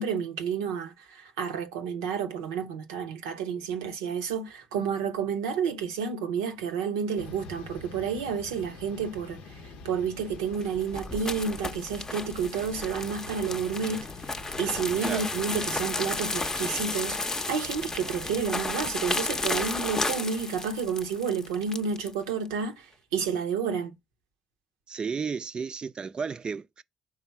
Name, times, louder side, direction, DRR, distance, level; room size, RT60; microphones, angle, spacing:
voice 1, 0.0-9.4 9.8-14.1 14.6-24.0, right 6 dB, 85° right, 0.7 m, -30 dB
sound 1, 7.2-18.5, left 4 dB, 75° left, 0.6 m, -46 dB
sound 2, 10.4-22.1, left 2 dB, 25° left, 0.6 m, -33 dB
voice 2, 24.9-26.8, right 5 dB, 40° right, 0.4 m, -33 dB
4.9 x 3.7 x 5.6 m
hypercardioid pair, 40°, 2 cm